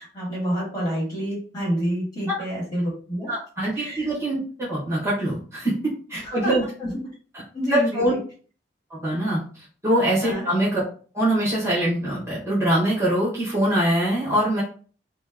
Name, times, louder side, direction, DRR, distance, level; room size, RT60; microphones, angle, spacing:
voice 1, 0.0-3.3 3.8-4.1 6.2-6.5 6.8-6.9 7.5-8.2 10.2-10.4, equal, 20° left, -6 dB, 1.6 m, -28 dB
voice 2, 3.3-4.4 4.7-5.7 6.1-6.6 7.7-8.1 8.9-10.8 11.1-14.6, right 1 dB, 15° right, -6 dB, 1.0 m, -23 dB
3.1 x 2.0 x 3.4 m, 0.41 s
head